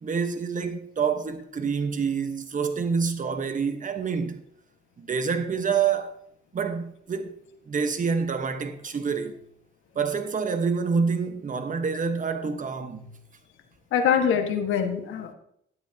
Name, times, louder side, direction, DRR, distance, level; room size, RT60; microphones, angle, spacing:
voice 1, 0.0-4.4 5.0-6.2 6.5-7.3 7.7-9.4 9.9-13.1, right 5 dB, 40° right, 1.3 m, -27 dB
voice 2, 13.9-15.3, left 7 dB, 85° left, 1.7 m, -24 dB
12.5 x 10.5 x 2.9 m
cardioid pair, 90°, 20 cm